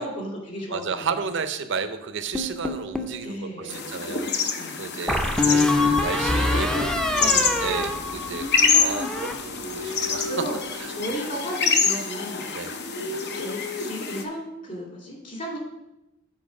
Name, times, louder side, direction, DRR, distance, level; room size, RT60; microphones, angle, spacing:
voice 1, 0.0-1.1 3.2-3.9 4.6-4.8 7.2-7.9 10.3-10.6 11.0-12.5 13.0-15.6, equal, 40° left, -2 dB, 2.4 m, -34 dB
voice 2, 0.7-4.3 4.8-6.9 7.2-10.3 10.8-10.9 12.5-12.8, right 5 dB, 65° right, 10 dB, 0.6 m, -33 dB
sound 1, 2.3-3.2 5.1-8.6 8.9-9.3, left 2 dB, 5° left, 0.5 m, -24 dB
sound 2, 3.7-14.2, left 5 dB, 55° left, 0.7 m, -27 dB
sound 3, 5.7-10.5, left 1 dB, 75° left, 1.4 m, -39 dB
7.5 x 4.5 x 5.9 m, 0.92 s
head